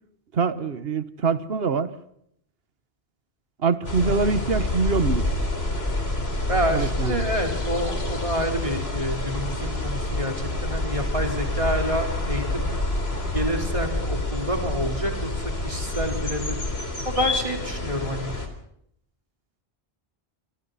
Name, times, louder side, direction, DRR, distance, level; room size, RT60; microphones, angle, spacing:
voice 1, 0.3-1.9 3.6-5.2 6.7-7.3, right 4 dB, 70° right, 13 dB, 1.5 m, -24 dB
sound 1, 3.8-18.5, left 2 dB, 80° left, 3.9 m, -27 dB
voice 2, 6.5-10.3 10.6-12.7 13.3-15.3 15.6-16.6 17.1-18.3, equal, 30° right, 3 dB, 4.2 m, -28 dB
28.5 x 25.0 x 4.2 m, 0.71 s
omnidirectional pair, 1.0 m